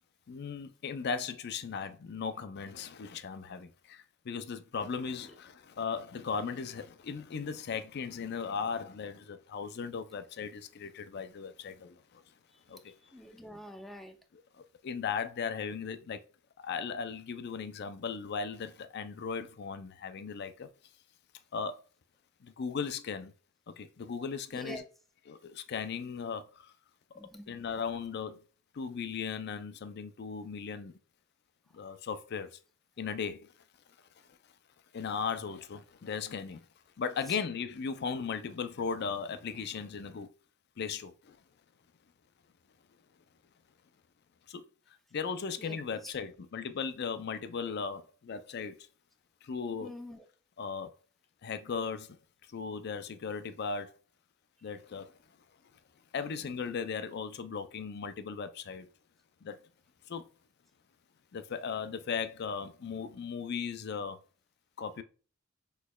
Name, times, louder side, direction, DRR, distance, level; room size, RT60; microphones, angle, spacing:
voice 1, 0.3-12.2 12.7-12.9 14.3-16.2 16.6-20.7 21.5-21.8 22.4-23.3 23.7-24.8 25.3-26.7 27.5-28.4 28.7-30.9 31.7-32.6 33.0-33.5 34.9-36.7 37.0-40.3 40.8-41.4 44.5-44.6 45.1-48.8 49.4-50.0 50.6-50.9 51.4-52.2 52.5-53.9 54.6-55.1 56.1-58.9 59.4-59.6 60.1-60.3 61.3-64.2 64.8-65.0, left 6 dB, 50° left, 0.4 m, -37 dB
voice 2, 12.9-14.2 24.5-24.8 27.2-27.6 45.6-46.1 49.8-50.2, left 1 dB, ahead, 0.5 m, -46 dB
6.2 x 3.1 x 2.3 m
head